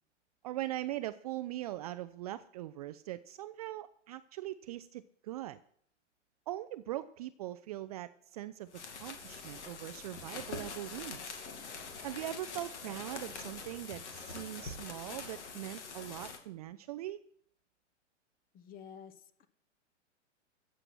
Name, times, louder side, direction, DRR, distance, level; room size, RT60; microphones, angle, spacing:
voice 1, 0.4-5.6 6.5-8.7 9.0-11.4 12.0-17.2, right 14 dB, 35° right, 12 dB, 0.4 m, -41 dB
sound 1, 8.7-16.4, left 4 dB, 65° left, 2.7 m, -44 dB
voice 2, 18.5-19.5, left 8 dB, 25° left, 13 dB, 1.0 m, -51 dB
14.5 x 7.7 x 6.1 m, 0.63 s
hypercardioid pair, 115°, 38 cm